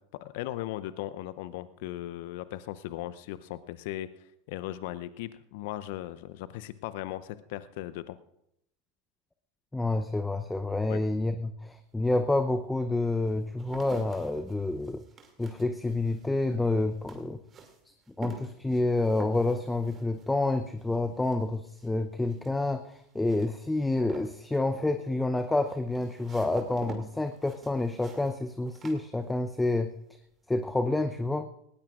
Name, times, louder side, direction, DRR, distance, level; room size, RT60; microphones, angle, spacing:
voice 1, 0.0-4.1 4.5-8.2 10.9-11.0, left 14 dB, 60° left, 15 dB, 0.6 m, -38 dB
voice 2, 9.7-15.0 15.4-17.4 18.2-29.9 30.5-31.5, left 2 dB, 10° left, 9 dB, 0.7 m, -28 dB
sound 1, 11.8-11.9 12.5-29.7 30.0-30.6, right 4 dB, 30° right, 2.5 m, -49 dB
19.0 x 18.5 x 2.5 m, 0.78 s
figure-of-eight pair, 85°, 0 cm